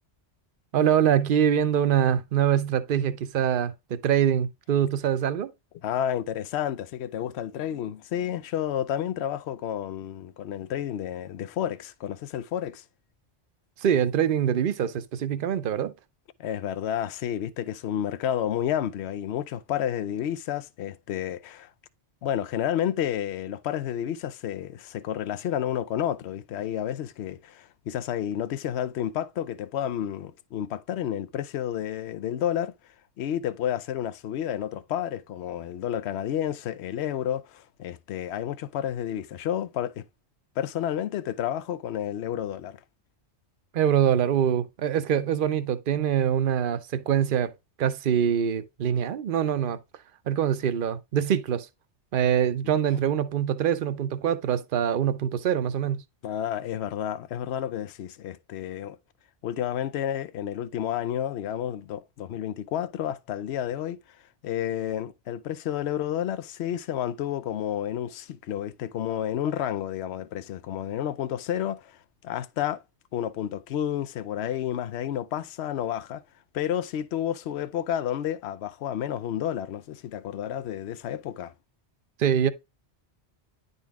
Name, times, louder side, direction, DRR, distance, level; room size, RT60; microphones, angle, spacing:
voice 1, 0.7-5.5 13.8-15.9 43.7-47.5 47.8-49.8 50.3-51.7 52.1-56.0 82.2-82.5, right 9 dB, 55° right, 0.8 m, -24 dB
voice 2, 5.8-12.8 16.4-21.7 22.2-32.7 33.2-40.0 40.6-42.8 56.2-59.0 59.4-64.0 64.4-72.0 72.2-72.8 73.1-76.2 76.5-81.5, left 10 dB, 70° left, 0.9 m, -30 dB
10.5 x 4.0 x 3.6 m
omnidirectional pair, 1.2 m